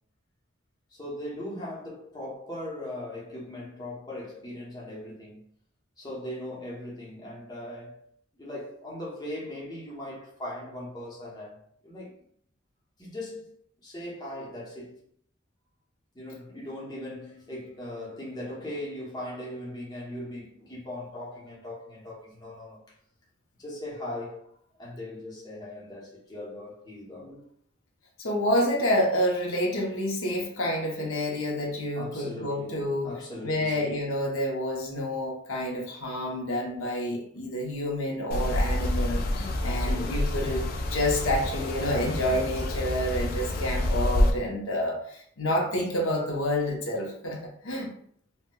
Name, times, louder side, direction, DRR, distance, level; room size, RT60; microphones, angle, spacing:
voice 1, 0.9-5.4 6.0-8.0 8.3-12.2 13.0-13.5 13.8-15.0 16.1-23.0 23.6-24.5 24.8-27.5 32.0-34.1 39.7-40.3, left 1 dB, 20° left, 0.8 m, -39 dB
voice 2, 28.2-33.1 33.4-47.9, left 1 dB, 80° left, 0.8 m, -28 dB
sound 1, 38.3-44.3, left 1 dB, 45° left, 0.4 m, -27 dB
4.2 x 2.2 x 2.2 m
head